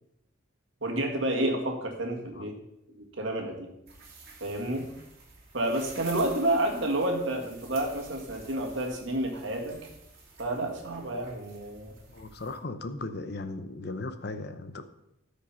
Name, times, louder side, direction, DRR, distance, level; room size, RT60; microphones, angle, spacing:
voice 1, 0.8-2.5 2.9-3.7 4.4-4.9 5.5-9.8 10.4-11.9, right 1 dB, 65° right, 2.0 m, -30 dB
sound 1, 3.9-12.6, right 3 dB, 45° right, 2.8 m, -50 dB
voice 2, 12.1-14.8, left 2 dB, 50° left, 0.7 m, -37 dB
13.5 x 5.2 x 5.6 m
head